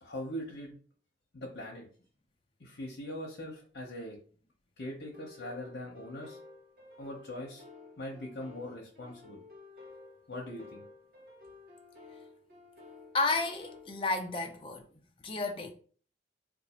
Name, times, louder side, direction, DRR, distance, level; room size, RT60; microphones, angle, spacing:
voice 1, 0.0-0.8 1.3-1.9 2.6-4.2 4.8-6.4 7.0-7.6 8.0-9.4 10.3-10.8, left 1 dB, 75° left, 0.8 m, -41 dB
sound 1, 5.1-13.9, left 3 dB, 55° right, 0.9 m, -53 dB
voice 2, 13.1-14.8 15.2-15.7, left 3 dB, 30° left, 0.5 m, -31 dB
2.6 x 2.4 x 4.2 m
head